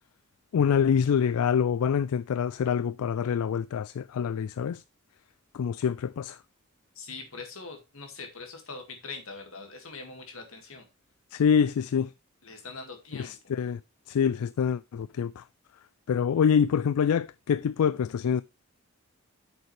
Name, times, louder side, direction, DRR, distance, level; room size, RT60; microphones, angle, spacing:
voice 1, 0.5-4.8 5.5-6.4 11.3-12.1 13.2-13.8 14.1-15.4 16.1-18.4, left 7 dB, 85° left, 0.3 m, -25 dB
voice 2, 6.9-10.9 12.4-13.4, left 4 dB, 65° left, 2.2 m, -42 dB
8.6 x 6.7 x 3.3 m
head